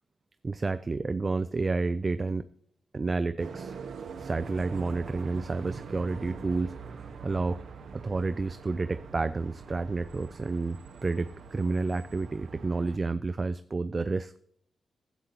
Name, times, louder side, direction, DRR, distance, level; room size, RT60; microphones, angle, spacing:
voice 1, 0.4-2.5 2.9-3.8 4.2-7.6 7.9-14.4, right 3 dB, 35° right, 12 dB, 0.3 m, -30 dB
sound 1, 3.4-13.0, right 5 dB, 75° right, 0.8 m, -44 dB
11.5 x 8.1 x 2.9 m, 0.68 s
cardioid pair, 85°, 0 cm